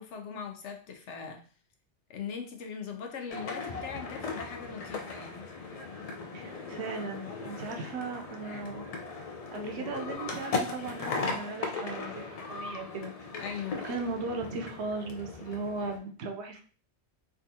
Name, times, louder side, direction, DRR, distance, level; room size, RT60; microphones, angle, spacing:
voice 1, 0.0-1.4 2.1-5.4 13.4-13.8, left 6 dB, 85° left, 4 dB, 1.0 m, -40 dB
sound 1, 3.3-16.0, left 4 dB, 55° left, 0.4 m, -38 dB
voice 2, 6.3-8.9 9.5-13.1 13.8-16.6, right 3 dB, 70° right, 4 dB, 0.9 m, -37 dB
3.5 x 2.4 x 2.7 m, 0.40 s
omnidirectional pair, 1.2 m